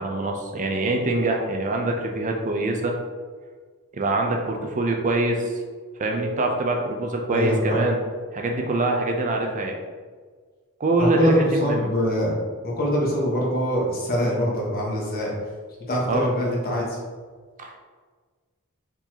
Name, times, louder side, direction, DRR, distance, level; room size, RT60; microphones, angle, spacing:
voice 1, 0.0-3.0 3.9-5.6 6.0-8.0 8.3-9.8 10.8-11.9 16.1-16.3 17.6-17.8, right 2 dB, 35° right, 2 dB, 0.5 m, -24 dB
voice 2, 7.3-7.8 11.0-12.4 12.6-15.3 15.9-17.0, equal, 45° left, -3 dB, 1.1 m, -23 dB
4.6 x 4.1 x 2.8 m, 1.5 s
head